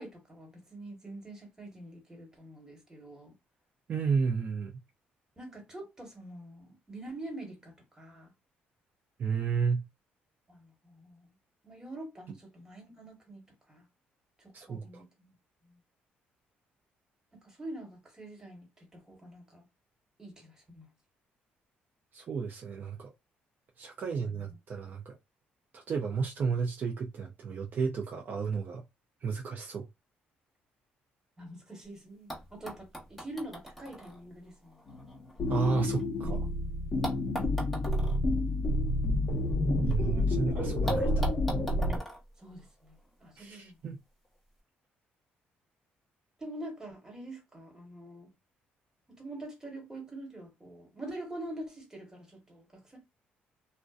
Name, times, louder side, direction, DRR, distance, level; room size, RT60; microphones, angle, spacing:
voice 1, 0.0-3.4 5.4-8.3 10.5-11.3 11.6-13.8 14.4-15.3 15.6-15.8 17.3-19.6 20.2-20.9 24.0-24.6 31.4-34.8 37.2-37.9 42.4-43.8 46.4-48.3 49.1-53.0, right 1 dB, 15° right, 1.3 m, -45 dB
voice 2, 3.9-4.7 9.2-9.9 14.5-15.0 22.1-23.1 23.8-25.2 25.7-28.8 29.2-29.9 35.5-36.5 39.9-41.3 43.4-44.0, right 5 dB, 50° right, 0.5 m, -32 dB
sound 1, 31.8-31.9 32.3-36.4 37.0-40.0 40.3-40.4 40.9-43.3 44.2-44.3, right 1 dB, 5° left, 1.1 m, -43 dB
sound 2, 34.9-42.0, left 1 dB, 40° left, 0.7 m, -29 dB
2.5 x 2.1 x 2.4 m
cardioid pair, 95°, 4 cm